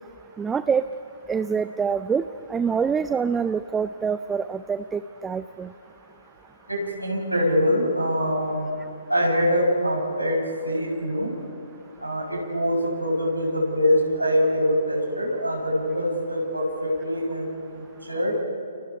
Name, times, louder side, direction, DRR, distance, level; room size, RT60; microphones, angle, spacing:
voice 1, 0.4-0.9 1.3-5.7, right 6 dB, 10° right, 12 dB, 0.5 m, -25 dB
voice 2, 6.7-8.7 9.1-11.3 12.0-17.5 18.1-18.3, equal, 90° right, -1 dB, 6.8 m, -24 dB
29.5 x 29.5 x 4.7 m, 2.6 s
figure-of-eight pair, 125°, 0 cm